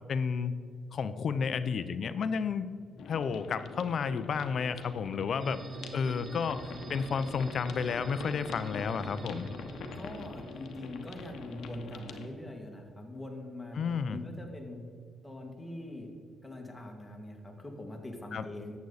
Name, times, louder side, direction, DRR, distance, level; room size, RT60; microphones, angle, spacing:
voice 1, 0.1-0.5 0.9-2.7 3.1-5.6 5.9-9.5 13.8-14.2 18.3-18.4, left 6 dB, 60° left, 13 dB, 0.6 m, -31 dB
sound 1, 3.0-12.3, left 4 dB, 75° left, 1.0 m, -44 dB
sound 2, 5.4-12.0, right 4 dB, 35° right, 0.6 m, -47 dB
voice 2, 9.9-14.8 15.2-16.1 16.4-18.8, left 1 dB, 10° left, 1 dB, 2.1 m, -43 dB
11.5 x 8.3 x 4.1 m, 2.4 s
cardioid pair, 85°, 0 cm